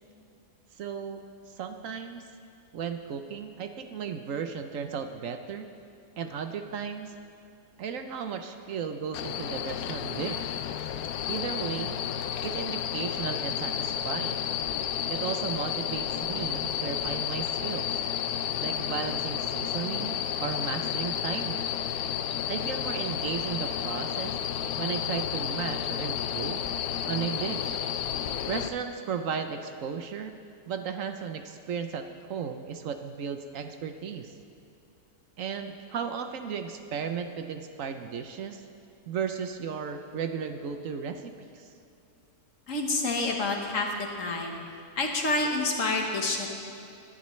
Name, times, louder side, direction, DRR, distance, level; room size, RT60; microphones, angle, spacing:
voice 1, 0.8-1.2 1.6-2.2 2.7-5.7 6.2-7.1 7.8-10.6 11.3-12.0 12.4-14.5 15.1-18.0 18.6-21.7 22.5-24.4 24.8-26.6 27.1-27.8 28.5-30.3 30.7-34.3 35.4-38.6 39.1-41.7, right 6 dB, 65° right, 7 dB, 1.0 m, -35 dB
sound 1, 9.1-28.7, left 9 dB, 90° left, 1.1 m, -31 dB
voice 2, 42.7-44.6 45.0-46.5, left 2 dB, 60° left, 1 dB, 1.6 m, -28 dB
19.5 x 11.0 x 3.2 m, 2.6 s
omnidirectional pair, 1.5 m